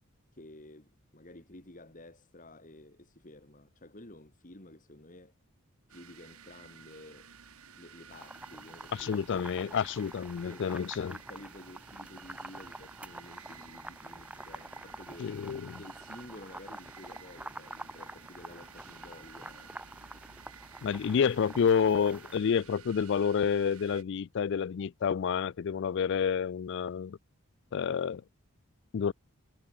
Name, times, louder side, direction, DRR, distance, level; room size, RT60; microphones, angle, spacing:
voice 1, 0.3-5.3 5.9-7.3 7.8-9.8 10.3-15.3 15.7-19.7, left 1 dB, 35° left, 2.5 m, -52 dB
sound 1, 5.9-24.0, right 7 dB, 80° right, 2.3 m, -54 dB
sound 2, 8.1-22.4, right 1 dB, 5° right, 2.4 m, -47 dB
voice 2, 8.9-11.1 15.2-15.8 20.8-27.2 27.7-28.2 28.9-29.1, left 7 dB, 55° left, 0.3 m, -29 dB
head